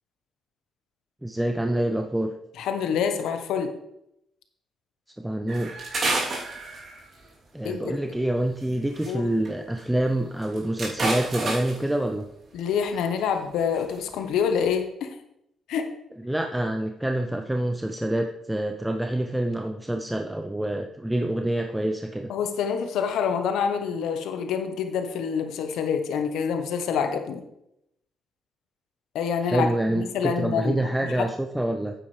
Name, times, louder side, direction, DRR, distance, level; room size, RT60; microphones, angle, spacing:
voice 1, 1.2-2.3 5.2-5.8 7.5-12.3 16.2-22.3 29.4-31.9, right 1 dB, 5° right, 4 dB, 0.6 m, -27 dB
voice 2, 2.6-3.7 7.6-8.0 9.1-9.3 12.5-15.1 15.7-15.9 22.3-27.4 29.1-30.9 31.2-31.3, left 7 dB, 85° left, 6 dB, 1.0 m, -27 dB
sound 1, 5.5-7.2 8.6-9.1 9.4-9.5 9.8-9.9 10.3-11.9 12.9-13.1 13.6-14.0 14.4-14.6, right 2 dB, 50° right, 3.1 m, -30 dB
9.0 x 8.9 x 3.3 m, 0.82 s
cardioid pair, 90°, 0 cm